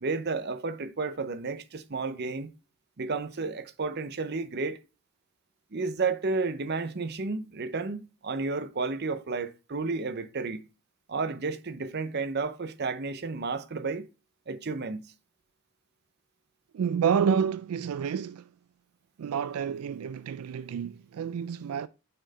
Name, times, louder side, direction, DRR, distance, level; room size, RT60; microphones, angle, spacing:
voice 1, 0.0-2.5 3.0-4.8 5.7-10.6 11.1-14.0 14.5-15.1, right 4 dB, 50° right, 0.7 m, -32 dB
voice 2, 16.7-18.5 19.2-21.9, right 7 dB, 85° right, 0.3 m, -29 dB
6.3 x 4.4 x 4.0 m
head